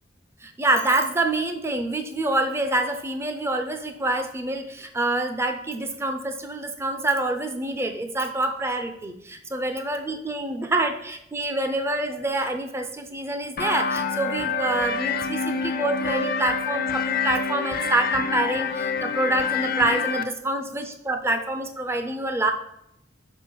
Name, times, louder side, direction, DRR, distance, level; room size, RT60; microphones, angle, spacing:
voice 1, 0.4-22.5, right 2 dB, 15° right, 6 dB, 0.4 m, -26 dB
sound 1, 13.6-20.2, left 5 dB, 50° left, 0.4 m, -27 dB
6.2 x 4.0 x 4.4 m, 0.78 s
head